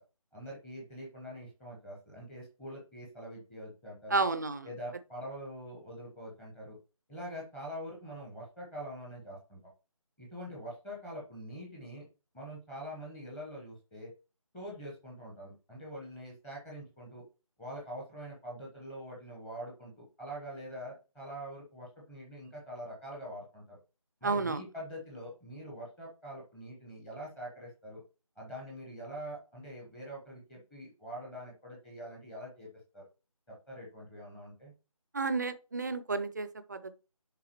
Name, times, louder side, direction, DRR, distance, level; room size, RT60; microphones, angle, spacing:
voice 1, 0.3-4.2 4.6-6.8 7.1-9.6 10.2-12.1 12.3-14.1 14.5-17.2 17.6-23.8 24.2-28.0 28.4-33.0 33.7-34.7, equal, 5° left, 0.9 m, -44 dB
voice 2, 4.1-4.7 24.2-24.6 35.1-36.9, right 3 dB, 30° right, 0.5 m, -31 dB
11.0 x 3.6 x 2.9 m
figure-of-eight pair, 160°, 18 cm